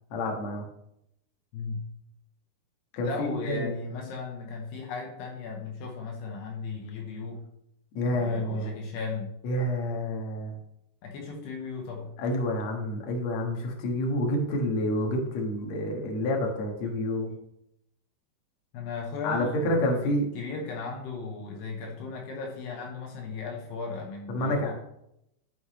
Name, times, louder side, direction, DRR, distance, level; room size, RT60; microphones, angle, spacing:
voice 1, 0.1-0.6 2.9-3.7 7.9-8.8 9.4-10.6 12.2-17.3 19.2-20.3 24.3-24.7, left 1 dB, 60° left, 1 dB, 1.9 m, -28 dB
voice 2, 1.5-1.9 3.0-7.4 8.1-9.3 11.0-12.1 18.7-24.7, left 4 dB, 75° left, 1 dB, 2.9 m, -36 dB
11.5 x 6.6 x 3.2 m, 0.78 s
omnidirectional pair, 5.3 m